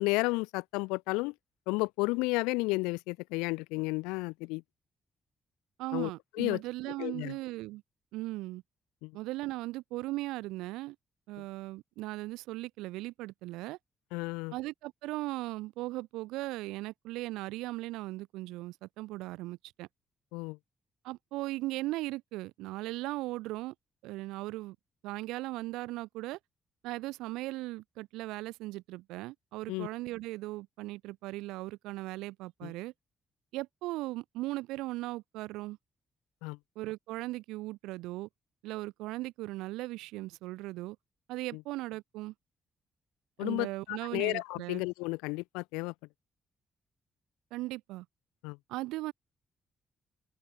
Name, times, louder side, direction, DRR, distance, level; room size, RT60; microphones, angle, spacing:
voice 1, 0.0-1.3 1.7-4.6 5.9-6.1 6.4-6.6 7.0-7.4 9.0-9.2 14.1-14.5 20.3-20.6 29.7-29.9 32.6-32.7 36.4-36.6 41.5-41.6 43.4-45.9 48.4-48.6, left 26 dB, 85° left, 4.4 m, -32 dB
voice 2, 5.8-7.8 8.1-8.6 9.1-11.0 11.3-13.8 14.5-19.9 21.0-23.7 24.0-24.8 25.0-26.4 26.8-32.9 33.5-35.8 36.8-38.3 38.6-41.0 41.3-42.3 43.4-44.8 47.5-48.1 48.7-49.1, right 19 dB, 80° right, 5.7 m, -38 dB
open air
hypercardioid pair, 45°, 0 cm